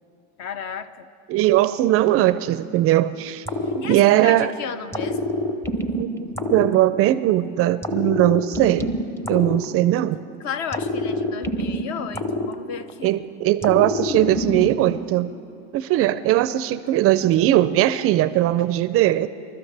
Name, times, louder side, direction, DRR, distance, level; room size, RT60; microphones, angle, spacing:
voice 1, 0.4-1.1 3.8-5.3 10.4-13.2, left 7 dB, 50° left, 12 dB, 0.8 m, -33 dB
voice 2, 1.3-3.4 3.8-4.5 5.9-8.9 9.3-10.2 13.0-15.3 15.7-19.3, right 14 dB, 40° right, 14 dB, 0.4 m, -19 dB
sound 1, 3.5-4.5 4.9-7.3 7.8-10.2 10.7-13.1 13.6-15.1, left 1 dB, 5° left, 0.7 m, -27 dB
27.0 x 13.0 x 3.3 m, 2.8 s
supercardioid pair, 120°, 37 cm